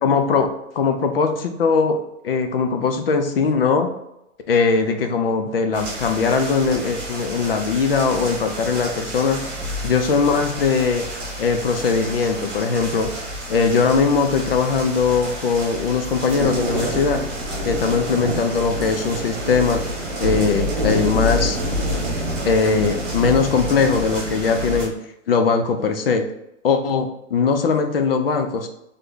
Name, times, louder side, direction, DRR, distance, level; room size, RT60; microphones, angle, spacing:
voice 1, 0.0-2.0 2.2-3.9 4.5-9.4 9.8-11.0 11.4-13.1 13.5-17.2 17.6-19.8 20.2-21.6 22.4-24.9 25.3-26.3 26.6-28.7, left 5 dB, 50° left, 6 dB, 0.6 m, -20 dB
sound 1, 5.7-24.9, equal, 20° right, 1.2 m, -28 dB
3.5 x 3.3 x 3.8 m, 0.85 s
hypercardioid pair, 175°, 38 cm